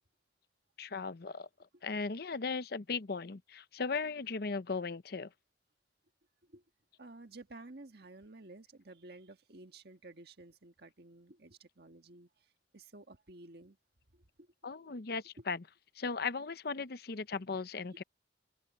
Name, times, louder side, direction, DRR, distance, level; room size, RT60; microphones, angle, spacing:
voice 1, 0.8-1.5 1.8-5.3 14.6-15.6 16.0-18.0, left 4 dB, 60° left, 0.7 m, -37 dB
voice 2, 7.0-12.3 12.7-13.8 14.1-14.5 14.8-14.9 15.4-15.5 17.9-18.0, right 2 dB, 60° right, 1.7 m, -53 dB
head